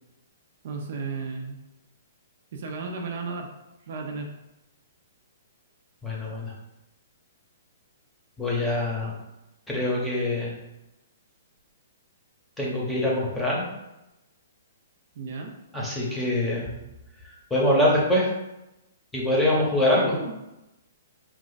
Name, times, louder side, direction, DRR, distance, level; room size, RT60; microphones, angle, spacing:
voice 1, 0.6-1.6 2.5-3.5 3.9-4.3 15.2-15.5 19.9-20.4, right 4 dB, 55° right, 2 dB, 0.6 m, -34 dB
voice 2, 6.0-6.5 8.4-9.2 9.7-10.5 12.6-13.7 15.7-16.7 17.5-18.3 19.1-20.2, left 1 dB, 5° left, -4 dB, 0.9 m, -24 dB
4.3 x 2.4 x 4.0 m, 0.94 s
hypercardioid pair, 155°, 0 cm